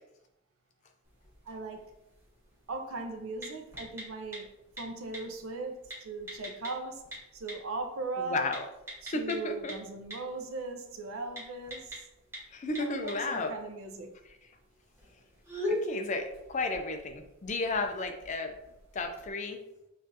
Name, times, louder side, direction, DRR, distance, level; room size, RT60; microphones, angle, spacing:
sound 1, 1.0-19.3, left 1 dB, 10° right, 1.3 m, -44 dB
voice 1, 1.5-1.9 2.7-4.5 4.8-7.0 7.3-8.5 9.0-12.0 12.8-14.1, right 3 dB, 70° right, 5 dB, 0.6 m, -38 dB
voice 2, 8.3-8.6 9.1-9.7 12.5-13.5 15.7-18.5 18.9-19.6, left 3 dB, 35° left, 6 dB, 0.4 m, -33 dB
5.7 x 2.5 x 2.7 m, 0.90 s
head